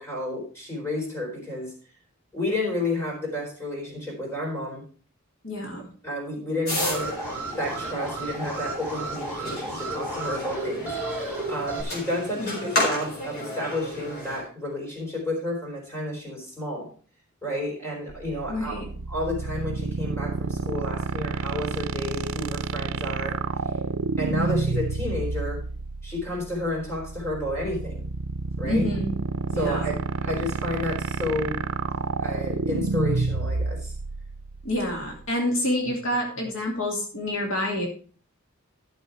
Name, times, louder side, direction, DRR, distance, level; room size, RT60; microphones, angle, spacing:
voice 1, 0.0-1.7 2.3-4.8 6.0-7.1 7.6-16.9 17.4-18.8 19.1-23.4 24.2-25.6 26.0-28.1 28.6-28.8 29.5-31.6 32.2-33.9, left 1 dB, 10° left, -1 dB, 4.2 m, -31 dB
voice 2, 5.4-5.8 12.4-12.7 18.5-18.9 28.6-29.1 29.5-29.9 34.6-37.9, left 1 dB, 70° left, 1 dB, 2.7 m, -28 dB
sound 1, 6.6-14.4, left 1 dB, 50° left, 4.1 m, -32 dB
Alarm, 6.7-11.8, right 3 dB, 10° right, 2.7 m, -34 dB
sound 2, 18.1-35.3, right 4 dB, 85° right, 0.6 m, -29 dB
12.5 x 6.9 x 4.6 m, 0.40 s
head